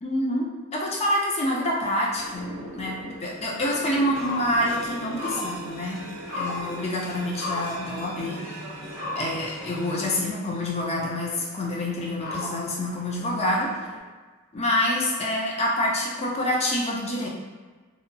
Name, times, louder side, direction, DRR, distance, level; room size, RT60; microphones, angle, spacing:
voice 1, 0.0-2.5 2.7-6.0 6.3-8.4 9.2-13.7 14.5-17.3, left 1 dB, 30° left, -2 dB, 0.5 m, -27 dB
sound 1, 2.1-14.0, left 1 dB, 80° left, 0.8 m, -38 dB
sound 2, 4.1-10.2, right 1 dB, 75° right, 0.6 m, -41 dB
2.7 x 2.1 x 2.6 m, 1.4 s
head